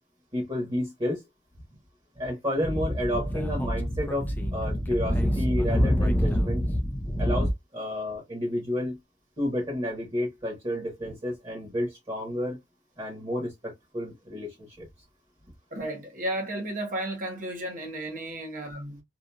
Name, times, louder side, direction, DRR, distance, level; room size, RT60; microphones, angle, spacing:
voice 1, 0.3-1.2 2.2-6.6 7.2-9.0 9.4-12.6 13.0-14.9, left 1 dB, 30° right, 1.3 m, -31 dB
Speech / Wind, 2.6-7.5, equal, 10° left, 0.5 m, -26 dB
voice 2, 15.7-19.0, right 1 dB, 45° right, 0.9 m, -33 dB
2.9 x 2.5 x 2.3 m
head